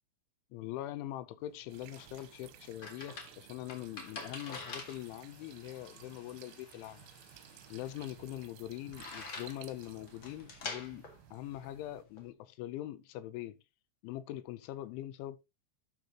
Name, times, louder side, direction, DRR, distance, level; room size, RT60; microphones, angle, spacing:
voice 1, 0.5-7.1 7.7-11.0 11.3-13.6 14.0-15.4, left 14 dB, 80° left, 2.9 m, -43 dB
sound 1, 1.4-12.3, left 4 dB, 60° left, 1.3 m, -48 dB
sound 2, 1.7-12.0, right 13 dB, 90° right, 3.4 m, -56 dB
Mechanisms, 4.4-10.3, left 2 dB, 20° left, 3.4 m, -65 dB
11.5 x 6.6 x 2.9 m
omnidirectional pair, 5.8 m